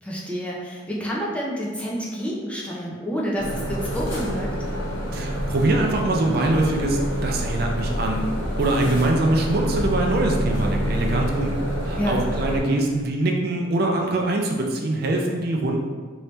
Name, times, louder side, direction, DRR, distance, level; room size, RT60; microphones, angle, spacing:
voice 1, 0.0-4.5 12.0-12.2, equal, 5° left, -4 dB, 0.5 m, -28 dB
sound 1, 3.4-12.6, equal, 85° left, 1.1 m, -27 dB
voice 2, 5.1-8.3 8.6-11.6 11.9-15.8, right 2 dB, 55° right, 1 dB, 0.4 m, -23 dB
3.1 x 2.7 x 3.3 m, 1.5 s
head